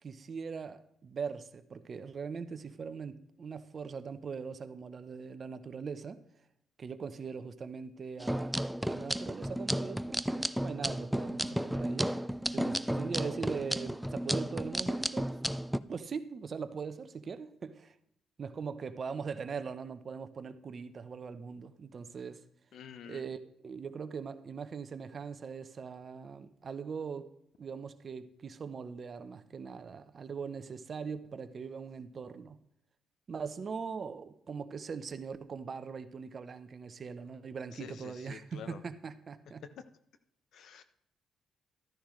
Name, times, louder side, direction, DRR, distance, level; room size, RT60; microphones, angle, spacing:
voice 1, 0.0-6.2 6.8-8.5 8.9-12.2 12.5-15.4 15.9-18.0 18.4-22.4 23.1-27.3 27.6-32.6 33.3-39.6, right 5 dB, 45° right, 0.8 m, -41 dB
sound 1, 8.2-15.8, equal, ahead, 0.4 m, -33 dB
voice 2, 22.7-23.2 37.7-38.8 40.5-40.8, left 7 dB, 70° left, 0.8 m, -47 dB
13.0 x 10.0 x 3.2 m
cardioid pair, 90°, 0 cm